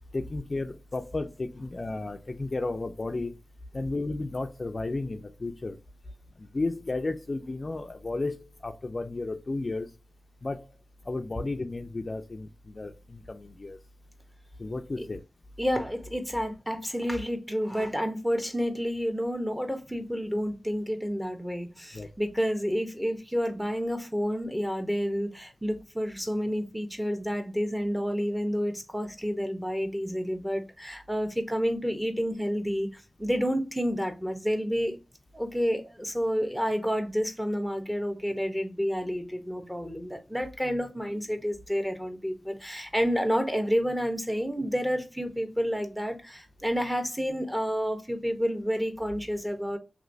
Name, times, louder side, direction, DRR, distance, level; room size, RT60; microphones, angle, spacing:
voice 1, 0.1-3.3 3.7-5.8 6.4-9.9 10.4-10.7 11.1-13.8 14.6-15.2 21.9-22.1, left 2 dB, 45° left, 0.4 m, -33 dB
voice 2, 15.6-35.0 35.3-49.8, equal, 5° right, 0.9 m, -29 dB
3.0 x 3.0 x 2.6 m
cardioid pair, 55°, 0 cm